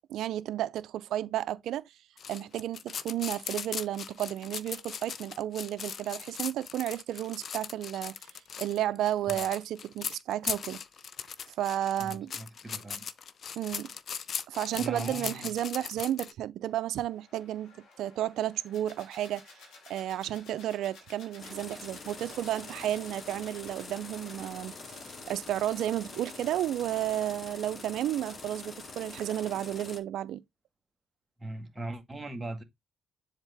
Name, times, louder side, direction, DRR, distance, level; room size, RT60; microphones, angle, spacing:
voice 1, 0.1-1.8 2.3-8.3 8.6-10.8 11.5-12.3 13.6-13.9 14.5-19.6 19.9-25.0 25.3-30.4, right 12 dB, 80° right, 0.5 m, -32 dB
sound 1, 2.2-16.3, left 7 dB, 55° left, 0.6 m, -39 dB
voice 2, 12.0-13.1 14.7-15.5 31.4-32.6, right 2 dB, 15° right, 1.4 m, -39 dB
sound 2, 16.6-24.5, left 4 dB, 80° left, 2.3 m, -55 dB
sound 3, 21.4-30.0, left 3 dB, 40° left, 1.4 m, -45 dB
7.3 x 4.0 x 3.4 m
cardioid pair, 90°, 0 cm